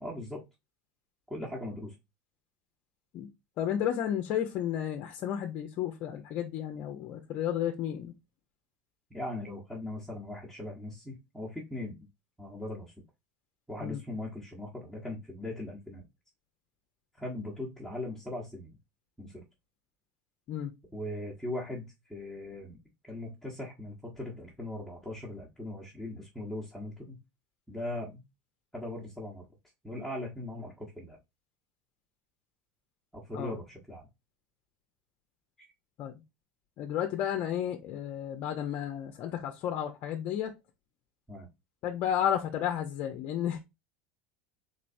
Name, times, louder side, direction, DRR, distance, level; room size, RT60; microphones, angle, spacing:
voice 1, 0.0-0.4 1.3-1.9 9.1-12.0 12.4-12.9 13.7-16.0 17.2-18.8 19.2-19.4 20.9-22.8 23.0-27.2 27.7-28.2 28.7-29.4 29.8-31.2 33.1-34.1 35.6-35.7 41.3-41.5, left 1 dB, ahead, 1.2 m, -39 dB
voice 2, 3.6-8.1 13.8-14.0 20.5-20.7 33.3-33.6 36.0-36.1 36.8-40.5 41.8-43.6, left 10 dB, 50° left, 0.6 m, -32 dB
3.9 x 3.1 x 2.6 m
supercardioid pair, 105°, 5 cm